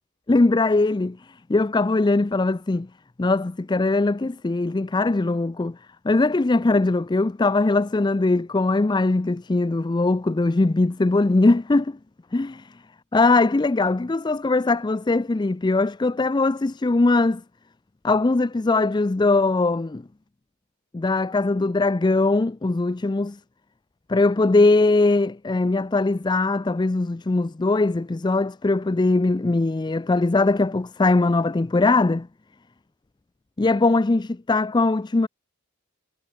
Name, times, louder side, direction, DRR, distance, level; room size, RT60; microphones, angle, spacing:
voice 1, 0.3-2.9 3.2-5.8 6.0-12.0 12.3-12.7 13.1-17.4 18.0-20.0 20.9-23.4 24.1-32.3 33.6-35.3, left 3 dB, 20° left, 0.4 m, -21 dB
head